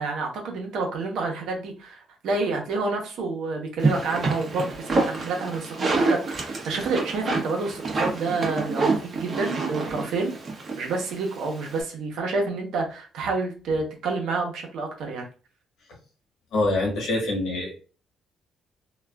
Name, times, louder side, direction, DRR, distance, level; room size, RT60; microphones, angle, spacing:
voice 1, 0.0-15.2, right 3 dB, 85° right, 1 dB, 0.8 m, -29 dB
sound 1, 3.8-11.8, right 3 dB, 40° right, 0.8 m, -27 dB
voice 2, 16.5-17.7, left 2 dB, 80° left, 0 dB, 1.2 m, -25 dB
3.0 x 2.3 x 2.2 m, 0.36 s
cardioid pair, 90°, 0 cm